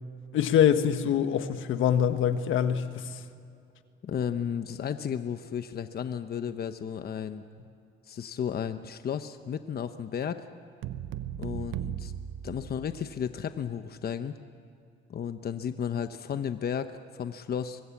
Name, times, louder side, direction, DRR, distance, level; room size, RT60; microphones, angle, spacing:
voice 1, 0.3-3.1, left 9 dB, 80° left, 9 dB, 1.4 m, -24 dB
voice 2, 4.0-7.4 8.1-10.4 11.4-12.1 12.4-14.3 15.1-17.8, left 8 dB, 50° left, 9 dB, 1.0 m, -33 dB
sound 1, 10.8-13.3, right 10 dB, 85° right, 0.9 m, -37 dB
24.5 x 20.5 x 8.6 m, 2.5 s
cardioid pair, 90°, 20 cm